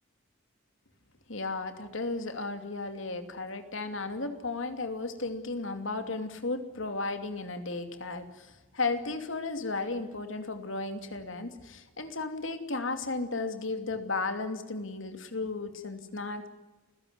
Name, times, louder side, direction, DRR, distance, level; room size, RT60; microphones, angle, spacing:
voice 1, 1.3-16.5, left 3 dB, 70° left, 7 dB, 2.7 m, -34 dB
29.0 x 16.0 x 9.6 m, 1.1 s
head